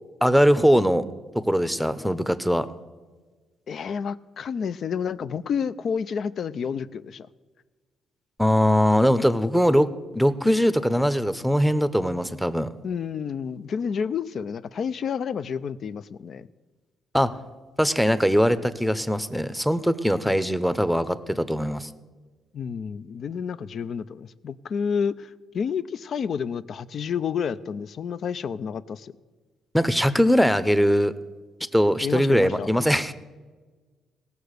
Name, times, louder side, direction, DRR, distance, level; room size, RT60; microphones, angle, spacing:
voice 1, 0.2-1.0 1.3-2.7 8.4-9.9 10.1-12.7 17.1-17.3 17.8-21.9 29.7-31.1 31.7-33.1, equal, ahead, 14 dB, 0.7 m, -21 dB
voice 2, 3.7-7.3 12.8-16.5 20.3-20.4 22.5-29.1 32.0-32.7, left 6 dB, 60° left, 15 dB, 0.5 m, -30 dB
17.5 x 6.8 x 6.6 m, 1.4 s
cardioid pair, 90°, 0 cm